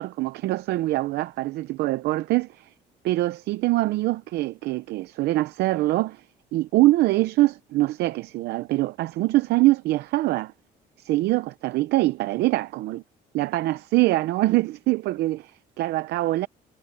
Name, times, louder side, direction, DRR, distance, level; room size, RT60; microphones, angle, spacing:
voice 1, 0.0-2.7 3.0-6.2 6.5-10.5 11.0-13.0 13.3-16.5, right 18 dB, 80° right, 0.7 m, -24 dB
cardioid pair, 110°, 17 cm